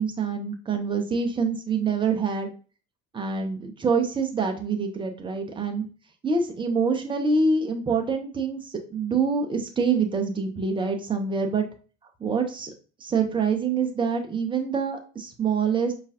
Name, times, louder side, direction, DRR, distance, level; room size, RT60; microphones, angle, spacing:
voice 1, 0.0-2.5 3.1-5.9 6.2-11.7 12.2-12.7 13.0-15.9, right 5 dB, 15° right, 4 dB, 0.5 m, -25 dB
5.0 x 2.3 x 2.4 m, 0.38 s
figure-of-eight pair, 65°, 40 cm